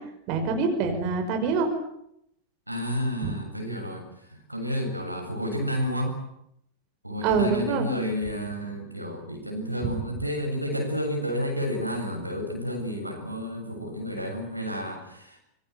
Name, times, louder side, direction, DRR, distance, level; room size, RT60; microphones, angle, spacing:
voice 1, 0.3-1.7 3.2-3.3 7.2-7.9 9.8-9.9, right 5 dB, 45° right, 5 dB, 5.5 m, -25 dB
voice 2, 2.7-6.2 7.0-15.4, equal, 90° right, 2 dB, 7.7 m, -31 dB
26.5 x 24.5 x 8.1 m, 0.75 s
figure-of-eight pair, 90°, 0 cm